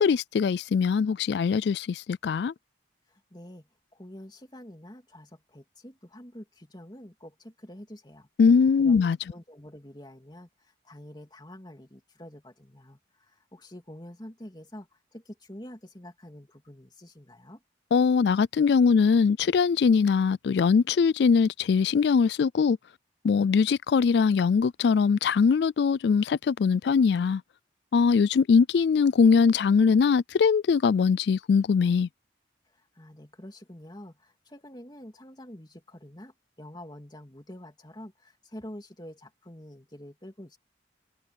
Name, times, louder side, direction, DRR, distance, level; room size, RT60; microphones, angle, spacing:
voice 1, 0.0-2.5 8.4-9.2 17.9-22.8 23.2-27.4 27.9-32.1, left 5 dB, 65° left, 0.3 m, -22 dB
voice 2, 3.1-8.3 8.8-17.6 32.8-40.6, left 1 dB, 25° left, 2.9 m, -47 dB
head